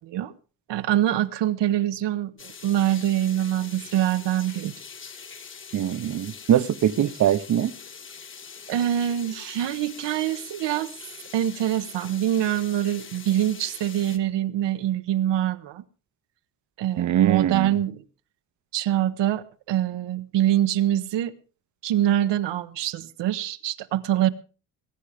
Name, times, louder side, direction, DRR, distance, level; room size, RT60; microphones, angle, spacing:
voice 1, 0.7-4.7 7.0-7.1 8.7-10.9 11.3-15.8 16.8-18.0 18.7-21.3 21.8-24.3, right 12 dB, 85° right, 12 dB, 1.2 m, -24 dB
sound 1, 2.4-14.2, left 6 dB, 30° left, 1.2 m, -43 dB
voice 2, 5.7-7.7 17.0-17.7, right 10 dB, 45° right, 17 dB, 0.7 m, -23 dB
21.0 x 9.8 x 5.0 m, 0.37 s
cardioid pair, 175°, 42 cm